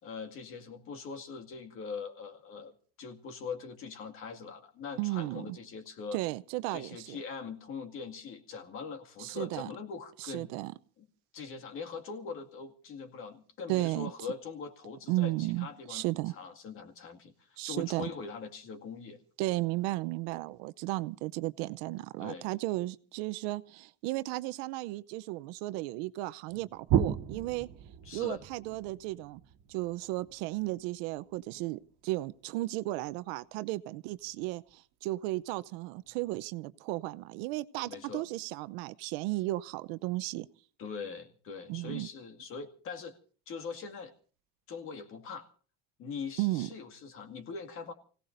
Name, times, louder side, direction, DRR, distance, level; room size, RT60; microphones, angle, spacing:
voice 1, 0.0-2.7 3.0-6.2 6.7-10.5 11.0-11.1 11.3-16.0 16.3-19.2 22.2-22.5 28.0-28.4 37.8-38.3 40.8-43.2 43.5-44.1 44.7-45.5 46.0-47.9, left 5 dB, 45° left, 2.2 m, -42 dB
voice 2, 5.0-5.6 6.1-7.2 9.2-9.7 10.3-10.7 13.7-14.1 15.1-16.4 17.6-18.1 19.4-27.7 28.1-29.4 29.7-40.5 41.7-42.1 46.4-46.7, right 19 dB, 80° right, 0.8 m, -34 dB
sound 1, 26.5-32.1 34.2-34.7 35.2-35.3 36.0-36.3, right 9 dB, 65° right, 1.6 m, -35 dB
29.0 x 17.5 x 2.6 m
cardioid pair, 145°, 31 cm